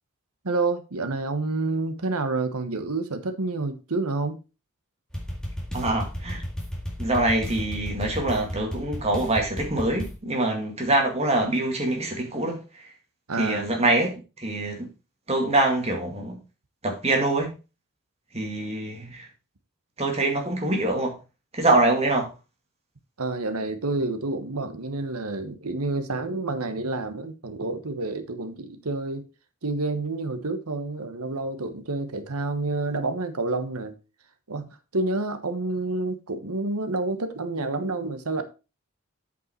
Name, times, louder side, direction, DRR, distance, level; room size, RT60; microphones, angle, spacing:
voice 1, 0.4-4.4 13.3-13.7 23.2-29.3 29.6-34.0 34.5-34.7 34.9-38.4, right 3 dB, 85° right, 1.2 m, -29 dB
sound 1, 5.1-10.2, equal, 5° left, 2.0 m, -33 dB
voice 2, 5.7-6.4 7.0-12.9 13.4-14.9 15.3-16.4 16.8-17.5 18.3-19.3 20.0-21.2 21.5-22.3, right 2 dB, 30° right, 2.1 m, -24 dB
8.3 x 5.4 x 4.4 m
head